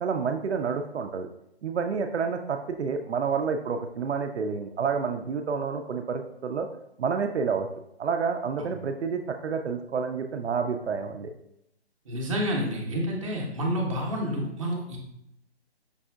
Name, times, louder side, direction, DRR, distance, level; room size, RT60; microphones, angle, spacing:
voice 1, 0.0-1.3 1.6-6.7 7.0-7.7 8.0-11.3, right 5 dB, 80° right, 5 dB, 0.5 m, -29 dB
voice 2, 12.1-15.0, equal, 30° right, -1 dB, 0.7 m, -29 dB
5.3 x 2.6 x 2.3 m, 0.78 s
figure-of-eight pair, 155°, 33 cm